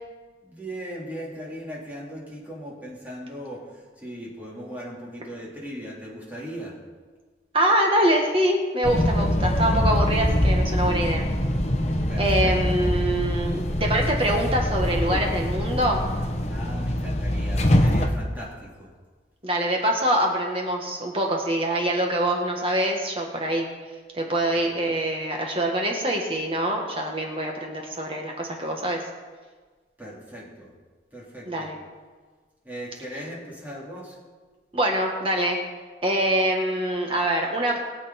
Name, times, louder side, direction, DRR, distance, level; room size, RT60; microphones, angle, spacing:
voice 1, 0.4-3.6 4.0-6.7 12.1-12.7 16.4-18.9 30.0-30.7 31.1-31.7 32.6-34.2, equal, 10° right, -6 dB, 3.9 m, -38 dB
voice 2, 7.5-11.3 12.2-16.0 19.4-23.7 24.1-29.0 31.5-31.8 34.7-35.6 36.0-37.8, right 1 dB, 30° right, 1 dB, 1.6 m, -24 dB
sound 1, 8.8-18.1, equal, 40° left, 1.1 m, -24 dB
21.5 x 8.2 x 4.4 m, 1.4 s
head